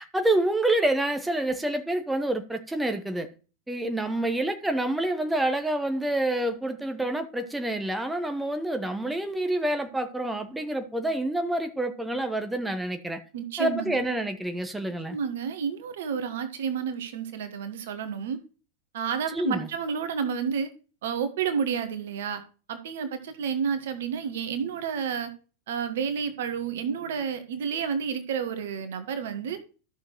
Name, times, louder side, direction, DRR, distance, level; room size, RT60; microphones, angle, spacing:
voice 1, 0.0-3.3 3.7-13.2 13.6-15.2 19.3-19.7, right 1 dB, 5° right, 1.0 m, -27 dB
voice 2, 13.3-14.1 15.1-18.4 18.9-20.7 21.0-22.4 22.7-25.3 25.7-29.6, right 7 dB, 55° right, 1.4 m, -30 dB
13.5 x 6.3 x 3.1 m
figure-of-eight pair, 90°, 0 cm